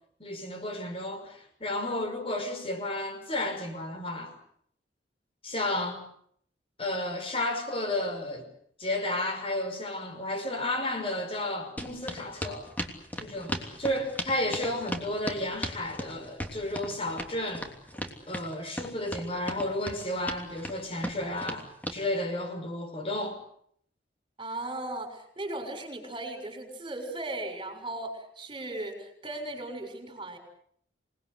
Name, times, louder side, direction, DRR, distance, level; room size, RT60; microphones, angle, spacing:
voice 1, 0.2-4.3 5.4-6.0 6.8-8.5 8.8-12.7 13.2-17.7 18.3-23.4, left 1 dB, 30° left, 5.9 m, -32 dB
sound 1, 11.8-22.0, equal, 10° left, 3.1 m, -36 dB
voice 2, 24.4-30.4, right 2 dB, 25° right, 6.9 m, -37 dB
28.0 x 20.5 x 8.3 m
head